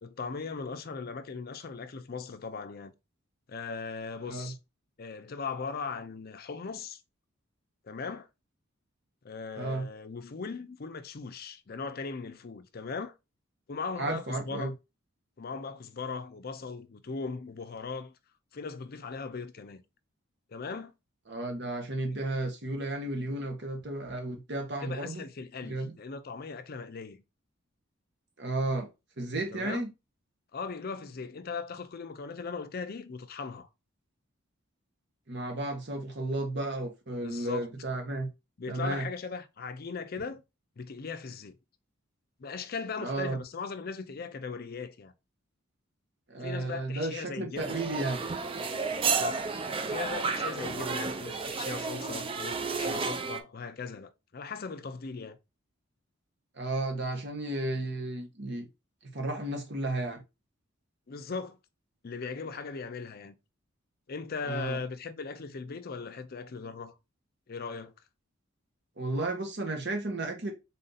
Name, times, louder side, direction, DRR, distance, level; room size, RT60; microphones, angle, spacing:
voice 1, 0.0-2.9 3.5-4.6 5.0-7.0 7.8-8.3 9.2-13.1 13.7-14.7 15.4-18.2 18.5-19.8 20.5-20.9 24.8-27.2 29.5-29.9 30.5-33.7 37.2-37.7 38.6-40.4 40.8-41.6 42.4-45.1 46.4-47.9 48.9-49.5 49.9-55.4 61.1-61.6 62.0-63.4 64.1-66.9 67.5-67.9, left 5 dB, 45° left, 0.5 m, -39 dB
voice 2, 9.6-9.9 14.0-14.7 21.3-25.2 25.6-25.9 28.4-28.9 29.2-29.9 35.3-38.3 38.7-39.1 43.0-43.4 46.3-48.2 56.6-58.7 59.0-60.2 64.5-64.8 69.0-70.5, right 2 dB, 55° right, 1.2 m, -33 dB
sound 1, 47.6-53.4, right 4 dB, 25° right, 0.4 m, -32 dB
4.1 x 2.7 x 3.9 m
head